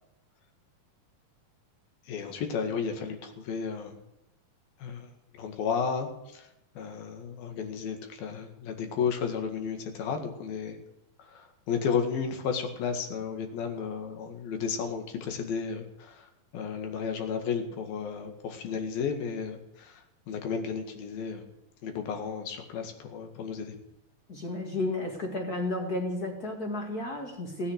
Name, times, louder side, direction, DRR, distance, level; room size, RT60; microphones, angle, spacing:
voice 1, 2.1-3.9 4.8-5.1 5.4-6.5 6.8-10.8 11.2-21.5 21.8-23.8, left 6 dB, 85° left, 5 dB, 3.7 m, -33 dB
voice 2, 24.3-27.7, left 2 dB, 35° left, 3 dB, 1.9 m, -32 dB
16.5 x 9.7 x 8.1 m, 0.89 s
omnidirectional pair, 4.1 m